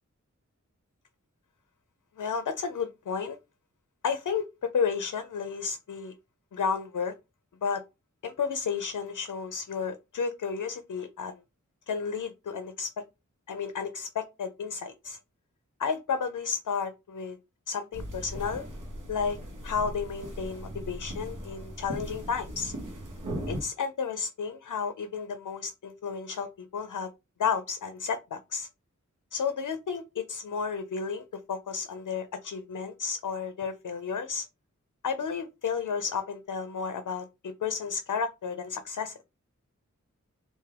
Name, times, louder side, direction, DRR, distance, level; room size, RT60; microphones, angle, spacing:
voice 1, 2.2-3.4 4.0-4.4 4.7-6.1 6.5-7.1 7.6-7.8 8.2-11.4 11.9-12.9 13.5-15.2 15.8-17.4 17.7-18.7 19.1-19.4 19.6-22.7 23.5-27.1 27.4-28.7 29.3-34.5 35.0-39.2, left 6 dB, 80° left, 0.5 m, -32 dB
sound 1, 17.9-23.6, equal, 85° right, 1.0 m, -38 dB
3.2 x 2.6 x 3.5 m
wide cardioid pair, 55°, 30 cm